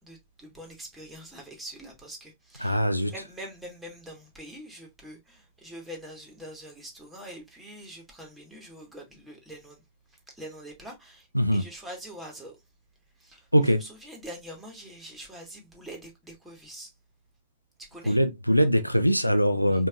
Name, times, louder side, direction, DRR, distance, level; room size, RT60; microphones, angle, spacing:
voice 1, 0.0-12.6 13.2-16.9 17.8-18.2 19.5-19.8, right 1 dB, 5° right, 1.7 m, -44 dB
voice 2, 2.6-3.1 11.3-11.6 13.5-13.8 18.1-19.9, equal, 90° left, 0.4 m, -22 dB
5.1 x 2.7 x 2.4 m
figure-of-eight pair, 90°, 0 cm